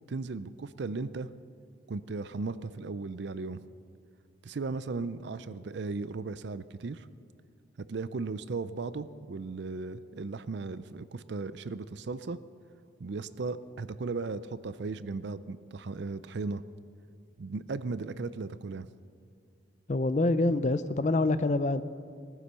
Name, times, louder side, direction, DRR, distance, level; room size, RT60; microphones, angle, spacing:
voice 1, 0.1-1.3 1.9-3.6 4.4-7.1 7.9-12.4 13.0-16.6 17.4-18.9, right 3 dB, 60° right, 15 dB, 0.5 m, -36 dB
voice 2, 19.9-21.8, left 2 dB, 40° left, 12 dB, 0.5 m, -26 dB
18.0 x 9.7 x 6.8 m, 2.3 s
head